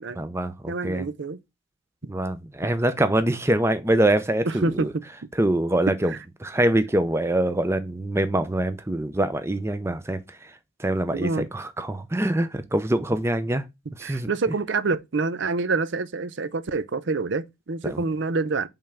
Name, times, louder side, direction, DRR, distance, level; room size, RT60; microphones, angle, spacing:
voice 1, 0.1-1.1 2.1-4.9 5.3-6.1 6.4-13.7 13.9-14.3 17.8-18.0, right 1 dB, 15° right, 0.6 m, -24 dB
voice 2, 0.7-1.4 4.6-4.9 6.1-6.2 11.1-11.5 14.0-18.7, right 3 dB, 60° right, 0.5 m, -27 dB
5.4 x 3.5 x 5.6 m
head